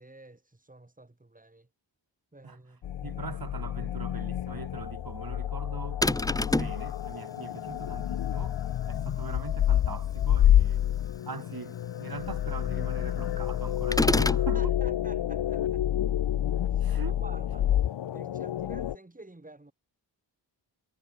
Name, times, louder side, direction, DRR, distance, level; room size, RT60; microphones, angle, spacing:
voice 1, 0.0-1.7 2.3-2.8 14.1-15.9 16.7-19.7, right 2 dB, 20° right, 7.0 m, -50 dB
sound 1, 2.8-19.0, left 11 dB, 70° left, 0.8 m, -28 dB
voice 2, 3.0-6.0 6.4-8.6 8.9-10.8 11.3-14.8 16.8-17.2, right 5 dB, 50° right, 7.6 m, -41 dB
sound 2, 6.0-6.8 13.9-14.5, left 1 dB, 10° left, 1.3 m, -26 dB
cardioid pair, 80°, 45 cm